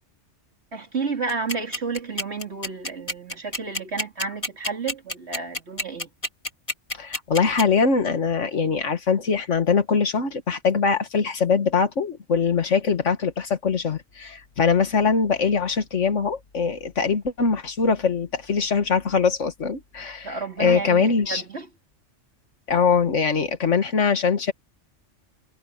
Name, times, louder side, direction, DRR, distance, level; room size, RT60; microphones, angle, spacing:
voice 1, 0.7-6.1 20.2-21.7, right 4 dB, 60° right, 3.2 m, -31 dB
sound 1, 1.3-7.6, left 2 dB, 25° left, 1.8 m, -28 dB
voice 2, 6.9-21.4 22.7-24.5, left 5 dB, 75° left, 1.9 m, -22 dB
omnidirectional pair, 1.3 m